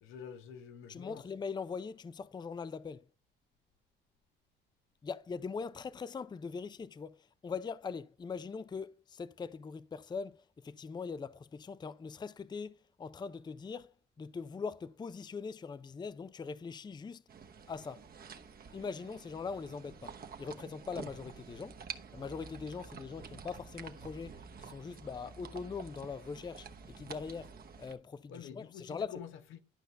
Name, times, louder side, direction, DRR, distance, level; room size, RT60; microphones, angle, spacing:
voice 1, 0.0-1.2 28.3-29.6, left 8 dB, 85° left, 1.0 m, -48 dB
voice 2, 0.9-3.0 5.0-17.2 17.7-18.1 18.7-21.8 22.1-29.1, left 5 dB, 20° left, 0.4 m, -42 dB
sound 1, 17.3-27.9, right 6 dB, 50° right, 1.0 m, -49 dB
11.5 x 5.4 x 3.3 m
cardioid pair, 90°, 20 cm